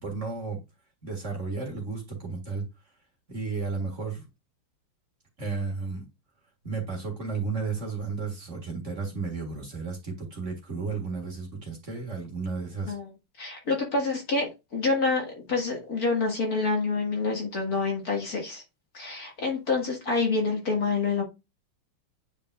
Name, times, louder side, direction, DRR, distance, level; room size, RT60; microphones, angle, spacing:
voice 1, 0.0-0.6 1.0-2.6 3.3-4.2 5.4-6.1 6.6-13.0, right 4 dB, 35° right, 1.9 m, -33 dB
voice 2, 13.4-18.6 18.9-21.2, left 3 dB, 45° left, 2.1 m, -27 dB
9.0 x 5.2 x 2.3 m
omnidirectional pair, 2.3 m